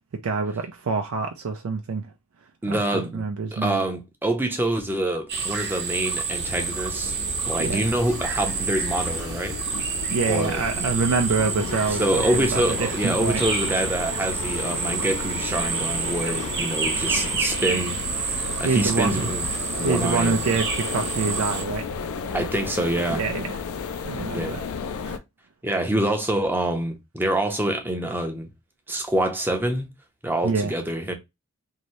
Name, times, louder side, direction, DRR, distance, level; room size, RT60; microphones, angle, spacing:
voice 1, 0.1-2.1 2.7-3.8 7.6-7.8 10.1-13.4 18.6-19.3 19.8-21.8 23.1-23.6 24.0-24.6 25.1-25.2 30.4-30.7, right 4 dB, 75° right, 0.4 m, -26 dB
voice 2, 2.6-3.2 3.5-7.1 7.5-9.6 10.3-10.6 12.0-18.0 18.2-19.4 19.8-20.6 22.3-23.2 24.3-24.6 25.6-28.5 28.9-29.9 30.2-31.1, right 1 dB, 10° right, 0.6 m, -26 dB
sound 1, 5.3-21.6, right 5 dB, 50° right, 0.8 m, -29 dB
sound 2, 6.3-25.2, left 5 dB, 70° left, 0.4 m, -34 dB
sound 3, 11.6-17.3, left 4 dB, 30° left, 0.7 m, -39 dB
2.7 x 2.6 x 3.1 m
head